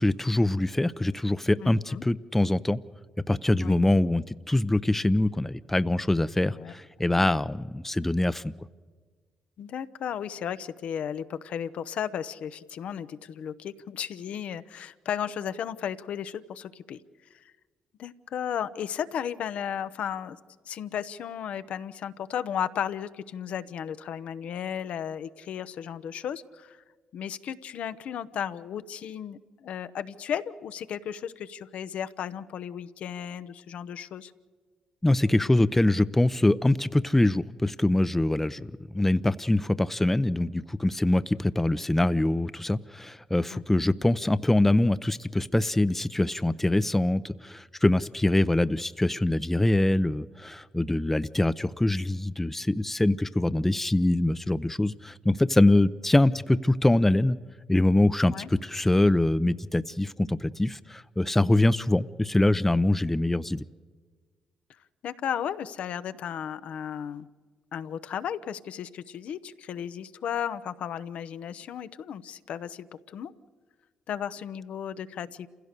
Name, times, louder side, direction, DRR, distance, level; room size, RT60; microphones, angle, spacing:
voice 1, 0.0-2.8 3.3-8.5 35.0-57.4 57.7-63.6, left 1 dB, 10° left, 15 dB, 0.6 m, -24 dB
voice 2, 1.6-2.0 3.6-3.8 6.5-6.7 7.1-7.3 9.6-17.0 18.0-20.4 20.7-26.8 27.1-34.3 43.5-43.8 58.3-58.5 65.0-67.3 67.7-73.3 74.1-75.5, left 9 dB, 70° left, 12 dB, 0.7 m, -34 dB
28.5 x 16.0 x 6.7 m, 1.5 s
supercardioid pair, 55°, 2 cm